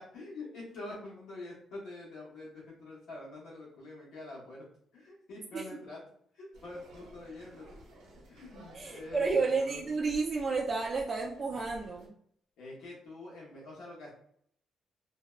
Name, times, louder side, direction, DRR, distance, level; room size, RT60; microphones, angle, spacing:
voice 1, 0.0-4.6 4.9-6.0 6.3-7.7 8.3-9.8 12.6-14.1, left 2 dB, 80° left, -5 dB, 1.1 m, -46 dB
sound 1, 6.5-12.1, right 1 dB, 90° right, 0.7 m, -54 dB
voice 2, 8.7-12.1, right 4 dB, 35° right, -2 dB, 0.4 m, -31 dB
2.6 x 2.0 x 2.3 m, 0.65 s
cardioid pair, 90°, 0 cm